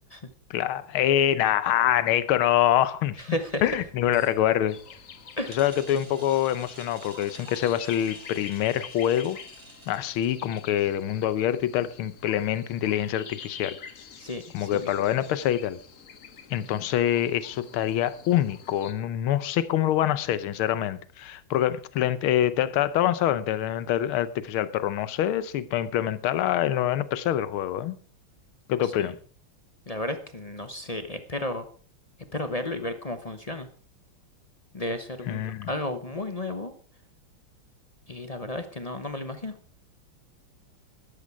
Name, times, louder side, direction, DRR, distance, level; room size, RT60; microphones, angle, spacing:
voice 1, 0.5-4.8 5.5-9.4 9.9-13.8 14.5-15.8 16.5-27.9 28.7-29.2 35.3-35.7, left 11 dB, 80° left, 1.7 m, -25 dB
voice 2, 3.2-3.6 5.4-5.6 14.2-14.9 28.8-29.1 29.9-31.7 32.3-33.7 34.7-35.4 35.7-36.7 38.1-39.6, left 1 dB, 30° left, 0.6 m, -33 dB
sound 1, 3.3-10.8, right 2 dB, 20° right, 3.2 m, -50 dB
sound 2, 4.7-18.9, left 7 dB, 50° left, 1.1 m, -47 dB
13.0 x 12.5 x 4.8 m
omnidirectional pair, 2.3 m